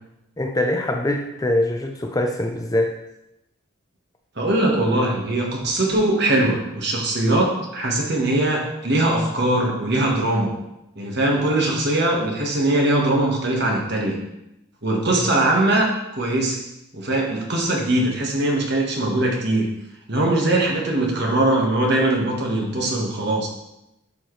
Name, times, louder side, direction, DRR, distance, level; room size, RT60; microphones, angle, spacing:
voice 1, 0.4-3.0 15.1-15.3, left 1 dB, 15° left, 3 dB, 0.4 m, -23 dB
voice 2, 4.4-10.5 11.0-14.2 14.8-16.6 16.9-19.7 20.1-23.5, right 1 dB, 50° right, 0 dB, 1.4 m, -21 dB
10.5 x 4.6 x 3.2 m, 0.89 s
head